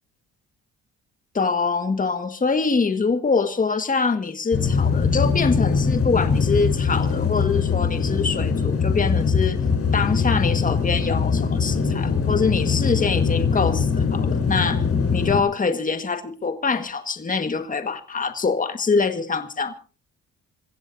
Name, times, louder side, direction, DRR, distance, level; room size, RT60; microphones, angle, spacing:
voice 1, 1.3-9.6 9.9-14.8 15.1-19.7, left 4 dB, 25° left, 1.7 m, -24 dB
sound 1, 4.5-15.4, left 5 dB, 55° left, 4.5 m, -22 dB
28.5 x 15.5 x 2.7 m
cardioid pair, 90°, 30 cm